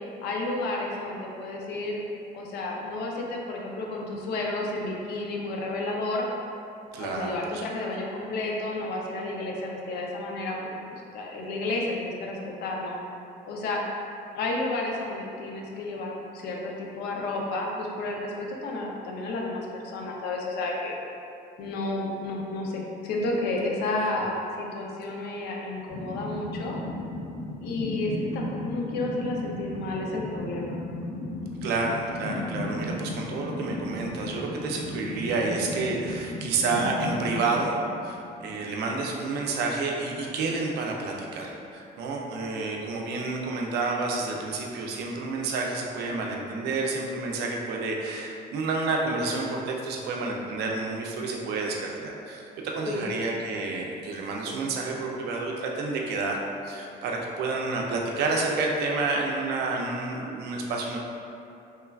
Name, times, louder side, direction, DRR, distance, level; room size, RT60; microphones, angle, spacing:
voice 1, 0.2-2.0 2.3-6.3 7.0-13.0 13.5-13.8 14.3-20.9 21.6-26.8 27.6-30.8 52.9-53.1, left 2 dB, 75° left, -1 dB, 0.5 m, -31 dB
voice 2, 6.9-7.6 31.6-37.8 38.0-56.4 56.6-61.0, right 3 dB, 75° right, 0 dB, 0.4 m, -29 dB
sound 1, 25.9-38.5, left 2 dB, 50° left, 1.0 m, -35 dB
3.1 x 2.2 x 2.3 m, 2.6 s
cardioid pair, 110°, 17 cm